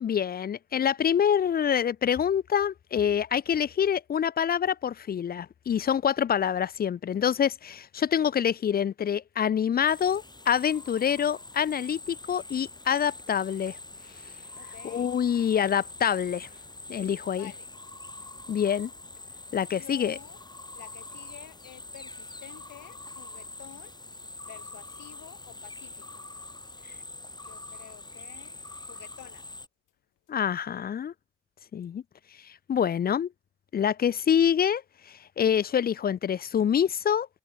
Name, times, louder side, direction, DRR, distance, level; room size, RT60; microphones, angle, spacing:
voice 1, 0.0-13.8 14.8-16.5 16.9-17.5 18.5-18.9 19.5-20.2 30.3-31.1 31.7-32.0 32.7-33.3 33.7-34.8 35.1-37.3, left 8 dB, 30° left, 0.4 m, -26 dB
sound 1, 9.9-29.7, left 2 dB, 15° left, 2.1 m, -44 dB
voice 2, 14.6-15.1 17.4-17.7 19.7-20.4 20.7-23.9 24.5-26.2 27.4-29.5, left 14 dB, 85° left, 6.1 m, -50 dB
cardioid pair, 90°, 30 cm